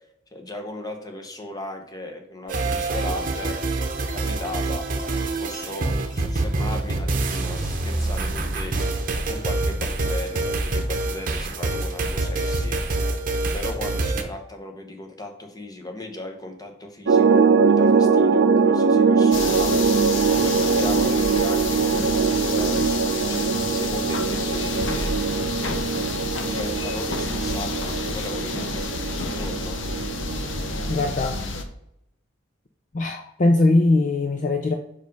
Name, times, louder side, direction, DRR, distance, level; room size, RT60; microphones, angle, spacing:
voice 1, 0.3-3.6 4.1-8.7 9.2-13.2 13.5-19.7 20.4-25.1 26.4-29.8, left 1 dB, 20° left, 4 dB, 1.1 m, -37 dB
sound 1, 2.5-14.2, right 2 dB, 45° right, 0.9 m, -26 dB
sound 2, 17.1-31.0, right 5 dB, 65° right, 0.5 m, -22 dB
sound 3, 19.3-31.6, left 3 dB, 75° left, 0.8 m, -30 dB
voice 2, 30.9-31.4 32.9-34.7, left 2 dB, 40° left, 4 dB, 0.5 m, -20 dB
5.2 x 5.2 x 5.3 m, 0.81 s
head